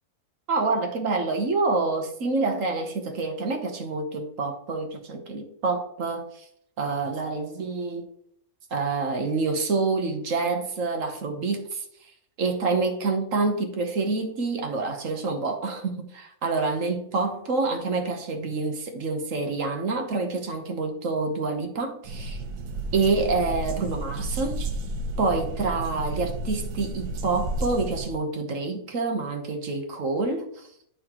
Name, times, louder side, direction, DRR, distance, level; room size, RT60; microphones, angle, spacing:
voice 1, 0.5-6.5 6.8-8.1 8.7-22.4 22.9-24.7 25.2-30.7, right 3 dB, 60° right, 1.3 m, -27 dB
sound 1, 22.0-28.1, right 2 dB, 90° right, 1.4 m, -32 dB
8.9 x 5.8 x 3.0 m
omnidirectional pair, 1.7 m